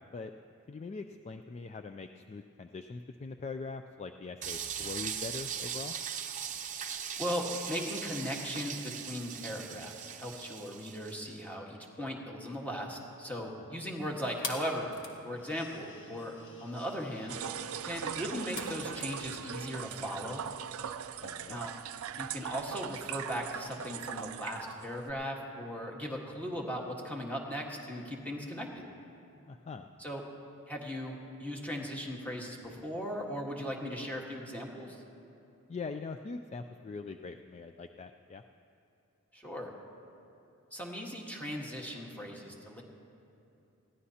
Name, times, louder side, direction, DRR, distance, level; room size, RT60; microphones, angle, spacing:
voice 1, 0.7-5.9 13.7-13.8 21.2-21.6 29.5-29.9 35.7-38.4, left 4 dB, 30° left, 7 dB, 0.3 m, -42 dB
sound 1, 4.4-11.3, right 8 dB, 35° right, 0.7 m, -39 dB
voice 2, 7.2-14.9 15.2-16.3 16.6-17.4 17.8-20.4 21.5-21.7 22.2-28.8 30.0-30.2 30.7-35.0 39.3-39.7 40.7-42.8, equal, 5° left, -1 dB, 1.5 m, -38 dB
sound 2, 14.0-22.4, left 4 dB, 60° left, 1.4 m, -48 dB
sound 3, 17.3-25.1, right 8 dB, 70° right, 0.4 m, -40 dB
21.0 x 15.5 x 2.8 m, 2.8 s
head